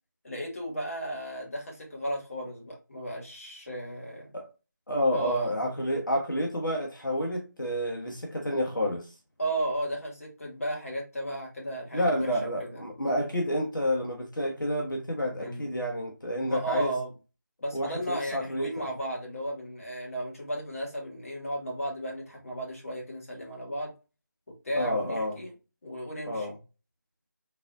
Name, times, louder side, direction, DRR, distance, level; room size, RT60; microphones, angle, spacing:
voice 1, 0.2-4.3 5.1-5.5 9.4-12.8 15.4-15.7 16.4-17.1 17.6-23.9 24.6-25.5 25.8-26.5, right 1 dB, 45° left, 1.5 m, -34 dB
voice 2, 4.9-9.1 11.9-16.9 17.7-18.9 24.8-25.4 26.3-26.6, equal, 75° left, 1.1 m, -29 dB
3.9 x 2.7 x 2.5 m
figure-of-eight pair, 170°, 11 cm